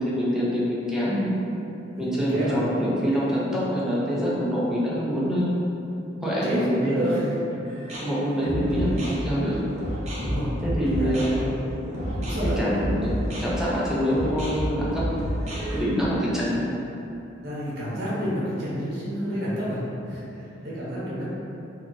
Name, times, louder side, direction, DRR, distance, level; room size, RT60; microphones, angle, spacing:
voice 1, 0.0-1.3 2.0-5.5 6.2-7.3 8.0-9.6 10.6-11.5 12.4-15.0 15.7-16.6, equal, 5° right, -8 dB, 0.6 m, -25 dB
voice 2, 2.0-2.6 6.4-7.3 10.2-10.5 11.0-11.4 12.1-12.6 17.4-19.8 20.1-21.3, equal, 60° right, -8 dB, 1.1 m, -30 dB
sound 1, 7.7-15.8, equal, 35° right, 0.8 m, -30 dB
2.8 x 2.4 x 3.8 m, 2.9 s
head